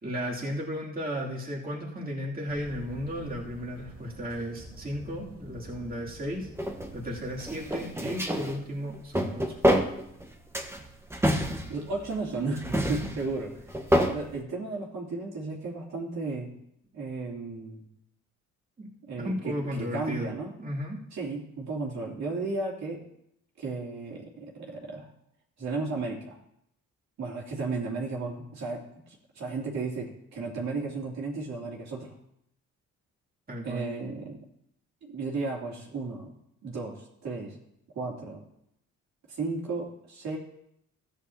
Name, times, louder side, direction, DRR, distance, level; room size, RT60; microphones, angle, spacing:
voice 1, 0.0-6.5 6.9-9.6 18.8-18.9 19.2-20.3 20.6-21.0 33.5-33.9, equal, 30° right, -4 dB, 2.9 m, -34 dB
sound 1, 2.5-7.8, right 1 dB, 50° right, 2.5 m, -47 dB
sound 2, 6.6-6.9 7.4-8.6 8.9-10.3 10.5-12.2 12.6-14.2, equal, 10° right, 1.3 m, -27 dB
voice 2, 11.7-13.6 14.0-16.5 16.9-17.8 19.0-20.5 21.1-23.0 23.6-25.1 25.6-26.4 27.2-32.1 33.6-34.4 35.0-36.3 36.6-37.6 37.9-38.4 39.3-40.4, right 3 dB, 65° right, -3 dB, 3.0 m, -34 dB
14.0 x 9.5 x 2.9 m, 0.77 s
cardioid pair, 90°, 30 cm